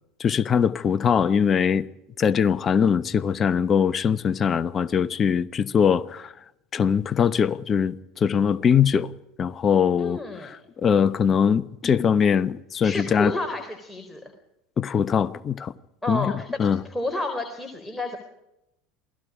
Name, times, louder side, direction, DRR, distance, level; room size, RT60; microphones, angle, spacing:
voice 1, 0.2-1.9 2.2-6.3 6.7-9.1 9.4-13.3 14.8-15.7 16.1-16.8, left 7 dB, 35° left, 1.0 m, -22 dB
voice 2, 10.0-10.6 12.8-14.2 16.0-16.6 16.9-18.2, left 2 dB, 5° left, 3.9 m, -30 dB
28.0 x 18.5 x 5.0 m
hypercardioid pair, 75°, 0 cm